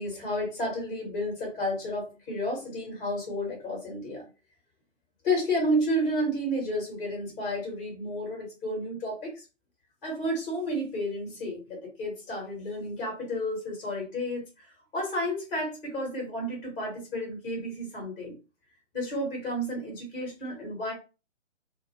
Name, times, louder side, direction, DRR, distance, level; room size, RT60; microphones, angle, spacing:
voice 1, 0.0-4.2 5.2-9.4 10.0-18.4 18.9-20.9, equal, 10° left, -1 dB, 0.7 m, -31 dB
2.0 x 2.0 x 2.9 m, 0.30 s
figure-of-eight pair, 140°, 39 cm